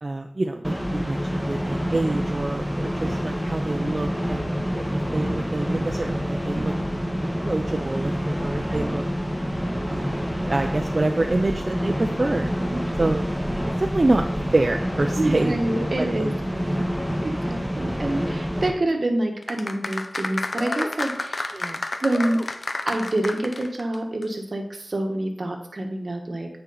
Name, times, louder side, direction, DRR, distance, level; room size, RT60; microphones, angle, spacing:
voice 1, 0.0-6.7 7.4-9.0 9.9-12.5 13.0-13.2 13.8-14.2 14.5-15.5 16.0-16.3 16.8-16.9 17.5-17.6 21.5-21.8, right 2 dB, 45° right, 4 dB, 0.5 m, -26 dB
sound 1, 0.6-18.7, equal, ahead, 1.2 m, -27 dB
voice 2, 15.2-16.9 17.2-21.7 22.0-22.4 22.9-26.5, right 1 dB, 65° right, 3 dB, 1.1 m, -27 dB
sound 2, 19.4-24.0 24.2-24.3, left 2 dB, 60° left, 0.7 m, -30 dB
9.4 x 4.4 x 4.0 m, 0.72 s
wide cardioid pair, 50°, 0 cm